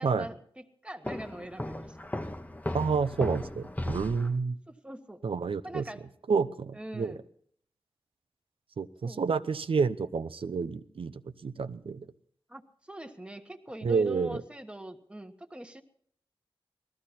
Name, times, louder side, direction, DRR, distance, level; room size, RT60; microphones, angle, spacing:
voice 1, 0.0-2.0 4.7-5.2 5.6-6.0 6.7-7.2 9.0-9.2 12.5-15.8, equal, 10° right, 7 dB, 1.2 m, -43 dB
Walk footsteps, 1.1-4.4, left 1 dB, 15° left, 0.9 m, -36 dB
voice 2, 2.7-4.6 5.2-5.8 6.3-7.2 8.8-12.1 13.8-14.4, right 5 dB, 85° right, 12 dB, 0.7 m, -29 dB
19.0 x 14.0 x 4.3 m, 0.63 s
wide cardioid pair, 90°, 9 cm